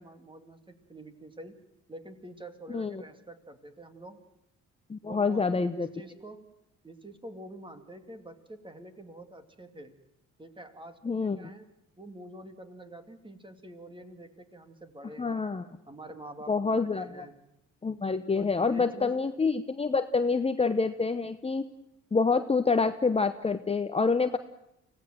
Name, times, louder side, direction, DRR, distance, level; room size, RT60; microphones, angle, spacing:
voice 1, 0.0-1.6 1.9-4.2 5.0-6.5 6.8-9.9 10.4-11.7 12.0-15.5 15.9-17.4 18.3-19.1, right 1 dB, 15° right, 8 dB, 2.4 m, -47 dB
voice 2, 4.9-5.9 11.0-11.5 15.2-15.6 16.5-17.3 17.8-21.7 22.1-24.4, left 4 dB, 20° left, 9 dB, 0.9 m, -27 dB
25.0 x 17.0 x 7.6 m, 0.82 s
cardioid pair, 90°, 30 cm